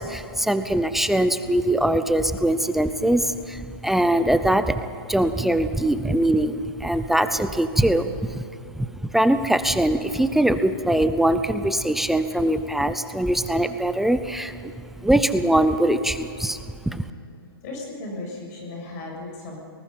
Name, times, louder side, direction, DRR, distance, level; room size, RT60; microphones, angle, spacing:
voice 1, 0.0-4.8 5.1-8.4 8.8-14.7 15.0-16.6 16.9-17.0, right 1 dB, ahead, 10 dB, 0.6 m, -22 dB
voice 2, 17.6-19.6, left 2 dB, 45° left, -1 dB, 7.0 m, -36 dB
24.5 x 20.0 x 5.5 m, 2.6 s
hypercardioid pair, 140°, 13 cm